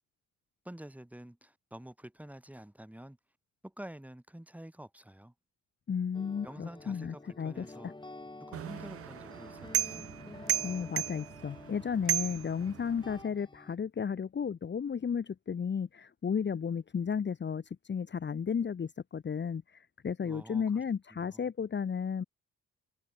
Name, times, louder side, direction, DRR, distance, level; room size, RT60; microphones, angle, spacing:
voice 1, 0.6-3.2 3.6-5.3 6.4-7.9 8.5-10.1 20.2-20.8 21.1-21.5, right 1 dB, 5° right, 3.8 m, -48 dB
voice 2, 5.9-7.9 10.6-22.2, left 6 dB, 35° left, 1.4 m, -34 dB
sound 1, 6.1-13.7, left 2 dB, 15° left, 5.3 m, -50 dB
sound 2, 8.5-13.2, right 10 dB, 50° right, 0.7 m, -35 dB
cardioid pair, 90°, 30 cm